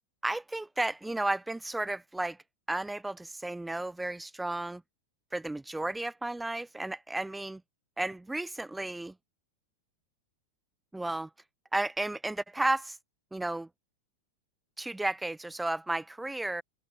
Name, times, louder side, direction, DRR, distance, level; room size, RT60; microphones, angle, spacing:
voice 1, 0.2-2.4 2.7-4.8 5.3-7.6 8.0-9.1 10.9-11.3 11.7-13.0 13.3-13.7 14.8-16.6, right 2 dB, 5° right, 0.3 m, -33 dB
open air
figure-of-eight pair, 90°, 0 cm